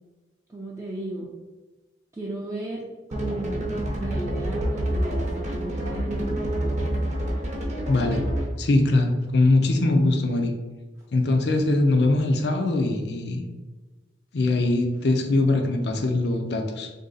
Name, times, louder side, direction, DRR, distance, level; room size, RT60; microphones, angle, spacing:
voice 1, 0.5-1.3 2.1-3.7 4.0-7.0, right 1 dB, 15° right, -4 dB, 0.4 m, -35 dB
sound 1, 3.1-8.6, right 1 dB, 40° right, 0.7 m, -27 dB
voice 2, 7.9-8.2 8.6-10.5 11.1-13.4 14.3-16.9, left 2 dB, 60° left, 4 dB, 0.5 m, -22 dB
3.5 x 2.7 x 3.9 m, 1.2 s
head